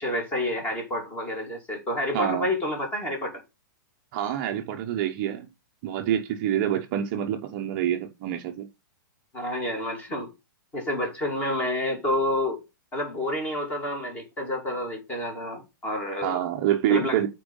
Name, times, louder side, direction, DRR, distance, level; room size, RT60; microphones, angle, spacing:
voice 1, 0.0-3.4 9.3-10.3 10.7-12.6 12.9-16.4 16.9-17.3, left 1 dB, 15° left, 2.5 m, -29 dB
voice 2, 2.1-2.5 4.1-5.5 5.8-8.7 16.2-17.3, right 11 dB, 30° right, 0.9 m, -26 dB
8.5 x 4.6 x 5.4 m
hypercardioid pair, 170°, 11 cm